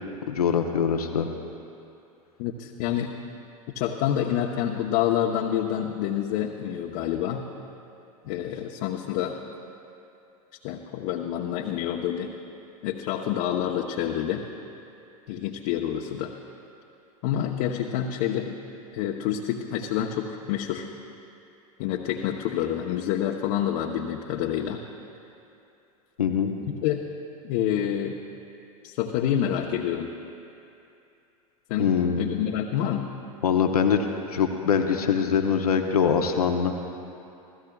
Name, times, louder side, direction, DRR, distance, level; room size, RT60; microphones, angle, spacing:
voice 1, 0.3-1.3 26.2-26.5 31.8-32.3 33.4-34.1 34.3-36.7, left 6 dB, 90° left, 4 dB, 0.9 m, -23 dB
voice 2, 2.4-3.1 3.7-7.5 8.2-9.4 10.6-12.3 12.8-14.4 15.3-16.3 17.2-18.6 18.9-20.9 21.8-24.8 26.8-27.0 27.4-28.2 28.8-30.1 31.7-33.1, left 10 dB, 60° left, 0 dB, 0.9 m, -27 dB
27.5 x 15.5 x 2.4 m, 2.7 s
hypercardioid pair, 95°, 19 cm